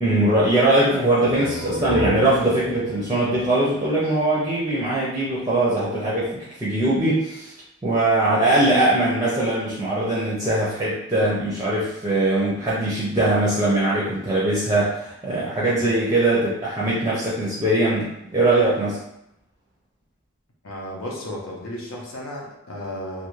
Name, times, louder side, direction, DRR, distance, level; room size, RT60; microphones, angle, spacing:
voice 1, 0.0-7.5 7.8-19.0, right 1 dB, 15° right, -7 dB, 0.4 m, -21 dB
sound 1, 1.2-4.7, equal, 80° right, 0.5 m, -30 dB
voice 2, 20.6-23.3, left 1 dB, 80° left, -1 dB, 0.7 m, -34 dB
2.5 x 2.4 x 3.1 m, 0.81 s
head